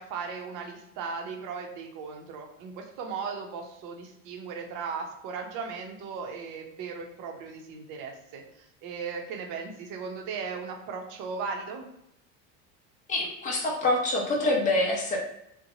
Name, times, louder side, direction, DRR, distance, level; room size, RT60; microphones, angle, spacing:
voice 1, 0.0-11.9, right 5 dB, 55° right, 2 dB, 0.7 m, -37 dB
voice 2, 13.1-15.2, left 2 dB, 20° left, -1 dB, 0.7 m, -26 dB
2.7 x 2.2 x 2.7 m, 0.81 s
supercardioid pair, 115°, 39 cm